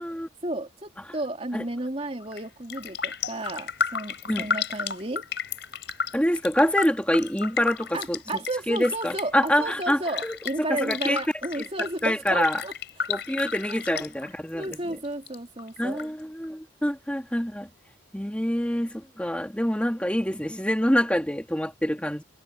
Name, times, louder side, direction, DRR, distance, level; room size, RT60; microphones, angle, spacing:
voice 1, 0.4-5.3 7.9-12.7 13.0-13.1 13.7-14.0 14.5-16.0, right 2 dB, 30° right, 3.3 m, -33 dB
Raindrop, 2.2-2.4 2.7-14.8 15.0-16.0 16.4-16.5, left 6 dB, 55° left, 4.9 m, -32 dB
voice 2, 6.1-8.2 8.7-11.2 11.6-11.7 12.0-12.6 13.1-14.8 15.8-17.7 18.1-22.2, equal, 5° left, 2.0 m, -26 dB
head